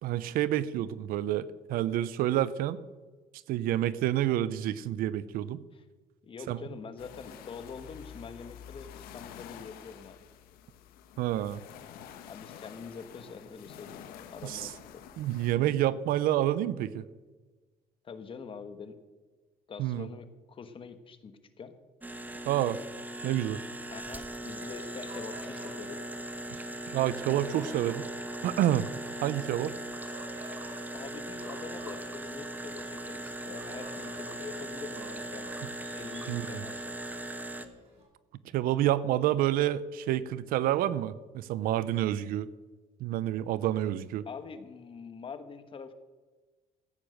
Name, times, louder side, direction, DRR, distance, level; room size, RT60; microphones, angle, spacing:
voice 1, 0.0-2.8 3.5-5.6 6.5-6.6 11.2-11.6 14.4-14.7 15.2-17.0 19.8-20.1 22.5-22.8 23.2-23.6 26.9-28.1 28.4-28.9 29.2-29.7 36.3-36.6 38.5-42.5 43.0-44.2, right 13 dB, 80° right, 17 dB, 0.7 m, -28 dB
voice 2, 6.2-10.3 12.3-14.0 14.3-15.1 18.0-19.0 19.7-21.7 23.9-26.0 30.9-35.5 35.9-36.8 44.2-45.9, left 5 dB, 35° left, 10 dB, 1.3 m, -45 dB
sound 1, 7.0-15.6, left 9 dB, 85° left, 1.3 m, -49 dB
sound 2, 22.0-37.7, right 1 dB, 10° right, 1.1 m, -39 dB
sound 3, 24.9-38.0, right 1 dB, 45° right, 5.1 m, -52 dB
15.0 x 9.0 x 6.5 m, 1.3 s
cardioid pair, 120°, 15 cm